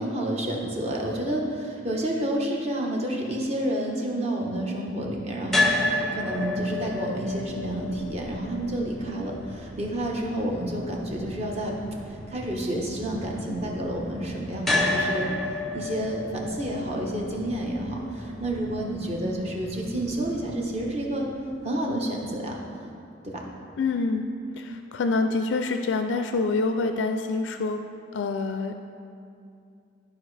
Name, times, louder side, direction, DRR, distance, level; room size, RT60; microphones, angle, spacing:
voice 1, 0.0-11.8 12.1-15.3 15.7-21.3 21.6-22.6 23.2-23.4, right 1 dB, 35° right, -1 dB, 1.0 m, -29 dB
sound 1, 5.5-21.6, left 2 dB, ahead, 0.6 m, -32 dB
voice 2, 23.8-24.3 24.6-27.8 28.1-28.8, left 3 dB, 80° left, 6 dB, 0.4 m, -26 dB
13.5 x 4.9 x 3.3 m, 2.5 s
head